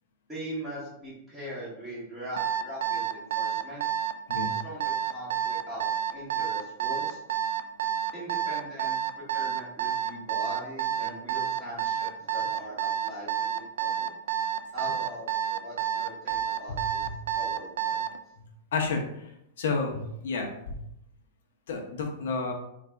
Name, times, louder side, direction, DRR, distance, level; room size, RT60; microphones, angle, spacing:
voice 1, 0.3-3.8 4.5-7.2 8.1-12.8 13.0-14.1 14.7-17.0 17.4-18.0, equal, ahead, -12 dB, 0.9 m, -41 dB
Alarm, 2.4-18.2, right 9 dB, 85° right, 0.3 m, -29 dB
voice 2, 18.7-19.0 19.6-20.7 21.7-22.5, left 4 dB, 70° left, 1 dB, 0.9 m, -30 dB
4.1 x 2.6 x 3.3 m, 0.80 s
supercardioid pair, 180°, 0 cm